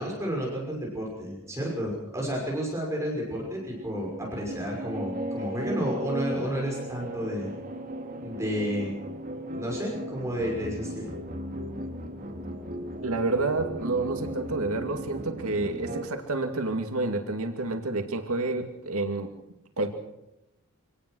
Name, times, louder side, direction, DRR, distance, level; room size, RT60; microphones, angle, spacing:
voice 1, 0.0-7.5 8.2-8.9 9.5-11.1, equal, 15° right, -1 dB, 5.8 m, -31 dB
sound 1, 3.2-16.0, right 1 dB, 40° right, 3.3 m, -36 dB
voice 2, 13.0-19.3 19.8-19.9, right 2 dB, 75° right, 5 dB, 2.4 m, -29 dB
26.0 x 18.0 x 6.3 m, 0.89 s
head